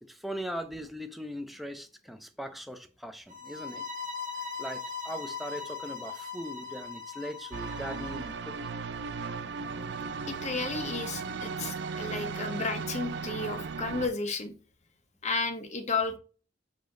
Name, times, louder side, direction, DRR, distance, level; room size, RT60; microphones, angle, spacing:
voice 1, 0.0-3.8 4.6-8.6, equal, ahead, 0.5 m, -40 dB
sound 1, 3.3-8.3, left 5 dB, 45° right, 1.2 m, -39 dB
sound 2, 7.5-14.1, right 5 dB, 70° right, 0.5 m, -36 dB
voice 2, 10.3-14.5 15.2-16.2, left 3 dB, 40° left, 1.0 m, -32 dB
5.0 x 2.8 x 3.7 m
head